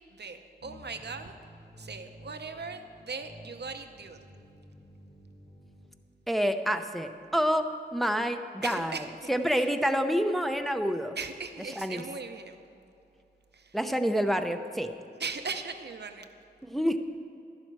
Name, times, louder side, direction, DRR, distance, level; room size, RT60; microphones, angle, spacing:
voice 1, 0.1-1.3 1.8-4.2 8.6-9.7 11.2-12.6 13.5-13.8 15.2-16.3, right 4 dB, 75° right, 7 dB, 0.8 m, -39 dB
sound 1, 0.6-5.9, equal, 85° left, 2.2 m, -52 dB
voice 2, 6.3-7.7 7.9-11.1 11.8-12.0 13.7-14.9 16.6-17.0, equal, ahead, 6 dB, 0.7 m, -28 dB
12.0 x 11.5 x 4.7 m, 2.7 s
wide cardioid pair, 70°, 18 cm